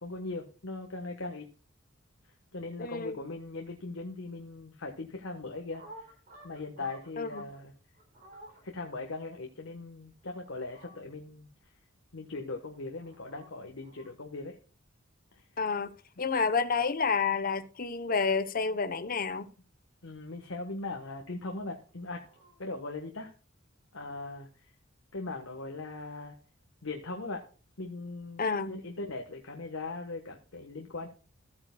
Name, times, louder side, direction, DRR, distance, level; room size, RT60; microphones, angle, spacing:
voice 1, 0.0-1.5 2.5-5.8 6.4-7.7 8.6-11.5 12.1-14.6 15.3-15.4 20.0-22.3 22.6-23.3 23.9-24.5 25.1-26.4 26.8-27.5 27.8-31.1, left 3 dB, 80° left, 1.3 m, -39 dB
voice 2, 2.8-3.2 7.2-7.4 15.6-19.5 28.4-28.8, left 5 dB, 45° left, 0.8 m, -30 dB
sound 1, 5.5-7.6 7.9-8.6 10.2-11.0 12.7-13.5 13.8-14.1 16.2-16.8 18.4-19.4 21.8-22.6, right 1 dB, 45° right, 4.8 m, -54 dB
14.5 x 8.8 x 2.3 m
head